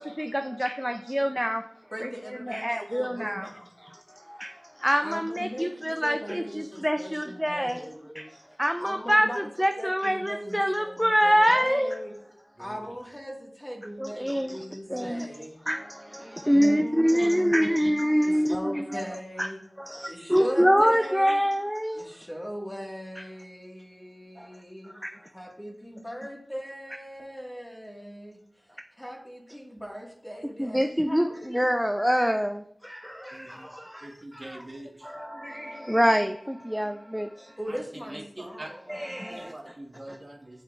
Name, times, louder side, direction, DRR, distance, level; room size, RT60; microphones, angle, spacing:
voice 1, 0.2-1.6 2.0-3.5 3.8-12.0 14.0-15.3 15.7-19.0 19.4-19.5 19.8-22.1 23.2-23.3 24.4-24.5 24.8-25.3 30.6-34.7 35.0-37.6 38.9-39.7 40.1-40.2, equal, ahead, 6 dB, 0.4 m, -26 dB
voice 2, 1.9-3.7 5.0-8.0 8.8-9.4 9.8-12.1 12.6-15.6 16.5-17.8 18.2-19.6 20.1-21.4 21.9-24.9 25.3-28.4 29.0-30.8 31.1-31.2 37.6-38.9, equal, 15° left, -1 dB, 1.7 m, -39 dB
voice 3, 34.0-35.1 37.7-37.8 38.1-38.7 39.3-40.6, right 1 dB, 45° right, 0 dB, 1.3 m, -43 dB
9.0 x 4.4 x 2.4 m, 0.65 s
wide cardioid pair, 45°, 0 cm